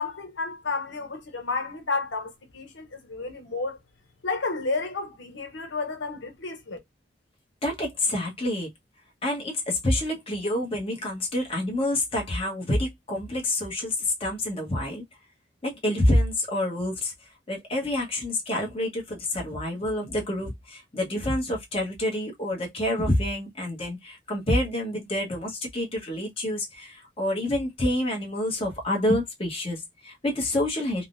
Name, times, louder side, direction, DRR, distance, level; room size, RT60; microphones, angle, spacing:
voice 1, 0.0-3.8 4.2-6.8, left 3 dB, 85° left, 0.9 m, -31 dB
voice 2, 7.6-8.7 9.2-15.0 15.6-31.0, left 1 dB, 30° left, 1.1 m, -27 dB
3.5 x 2.2 x 2.5 m
head